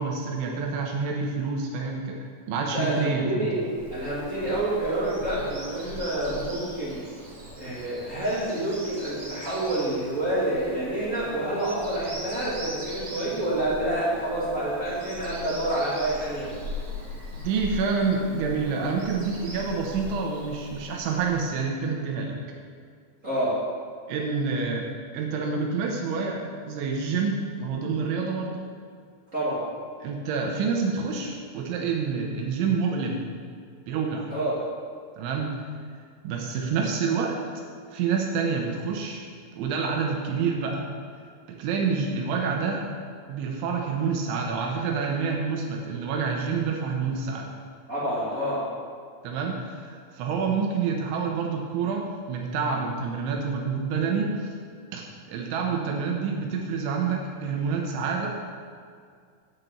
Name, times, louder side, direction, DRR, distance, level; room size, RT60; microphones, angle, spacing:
voice 1, 0.0-3.5 17.4-22.4 24.1-28.6 30.0-33.3 33.9-34.3 35.2-35.5 36.2-37.4 37.9-39.2 39.5-40.9 41.5-42.8 43.3-47.5 49.2-54.5 54.9-58.4, right 5 dB, 80° right, 1 dB, 3.4 m, -28 dB
voice 2, 2.6-3.6 3.9-7.0 7.5-16.5 23.2-23.6 29.3-29.6 34.3-34.5 47.9-48.6, right 1 dB, 25° right, -9 dB, 2.0 m, -28 dB
Bird vocalization bird call bird song, 3.6-21.6, left 1 dB, 40° right, 2.5 m, -40 dB
10.5 x 6.0 x 8.1 m, 2.1 s
omnidirectional pair, 5.6 m